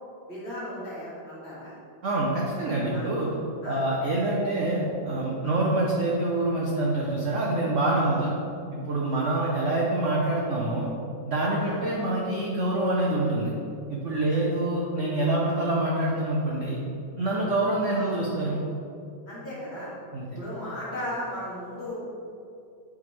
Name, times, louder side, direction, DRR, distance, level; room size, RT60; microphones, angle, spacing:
voice 1, 0.3-1.8 2.9-3.1 3.6-3.8 5.4-5.7 8.0-8.3 9.1-9.3 11.6-11.8 14.3-14.4 18.0-18.2 19.3-19.9 20.4-22.0, left 1 dB, 35° left, -9 dB, 1.8 m, -37 dB
voice 2, 2.0-3.3 3.6-8.3 8.7-10.9 11.2-13.5 13.9-16.8 17.2-18.6 20.1-20.4, right 2 dB, 60° right, -4 dB, 0.8 m, -26 dB
8.3 x 3.6 x 3.3 m, 2.6 s
omnidirectional pair, 2.1 m